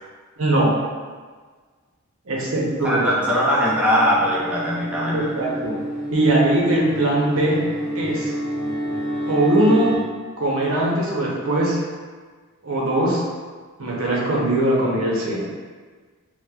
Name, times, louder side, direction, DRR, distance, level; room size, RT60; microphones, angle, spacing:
voice 1, 0.4-0.7 2.3-3.1 5.1-5.7 6.1-7.6 7.9-8.3 9.3-9.9 10.4-11.8 12.6-13.2 13.8-15.4, right 1 dB, 70° right, -4 dB, 0.7 m, -20 dB
sound 1, 2.6-10.0, right 1 dB, 20° left, 1.2 m, -29 dB
voice 2, 2.8-5.5, equal, 5° right, -7 dB, 0.4 m, -21 dB
4.4 x 2.0 x 2.2 m, 1.5 s
head